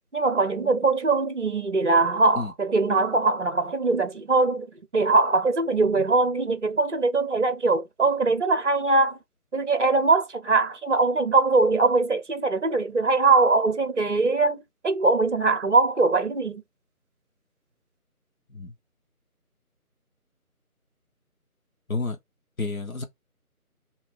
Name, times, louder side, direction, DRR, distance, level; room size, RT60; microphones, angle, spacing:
voice 1, 0.1-4.7 4.9-9.2 9.5-16.6, right 3 dB, 50° right, 0.8 m, -22 dB
voice 2, 22.6-23.0, left 3 dB, 65° left, 1.2 m, -30 dB
3.2 x 2.8 x 3.5 m
figure-of-eight pair, 165°, 45 cm